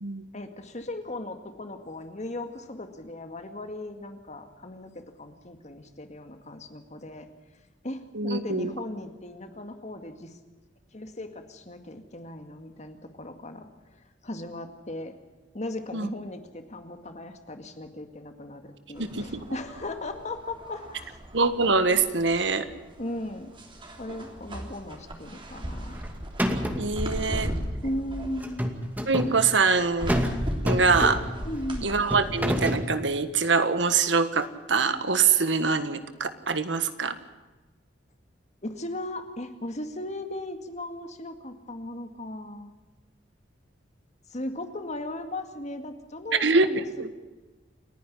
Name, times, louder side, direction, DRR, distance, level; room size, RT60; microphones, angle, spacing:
voice 1, 0.3-7.3 7.8-10.3 10.9-13.7 13.9-15.1 15.5-21.2 23.0-23.5 24.0-26.0 27.8-28.7 31.4-31.9 38.6-42.7 44.3-47.1, left 1 dB, 40° left, 7 dB, 2.1 m, -37 dB
voice 2, 8.1-8.7 15.9-16.1 19.1-19.4 21.3-22.7 26.8-27.5 29.1-30.2 30.6-31.2 31.8-37.2 46.3-47.1, right 4 dB, 75° right, 11 dB, 1.6 m, -24 dB
sound 1, 18.9-32.7, equal, 30° right, 3.4 m, -37 dB
sound 2, 25.7-26.1 26.4-26.9 28.4-29.3 30.1-30.4 30.7-31.4 32.1-32.9, equal, 10° right, 2.3 m, -27 dB
29.0 x 10.5 x 10.0 m, 1.2 s
head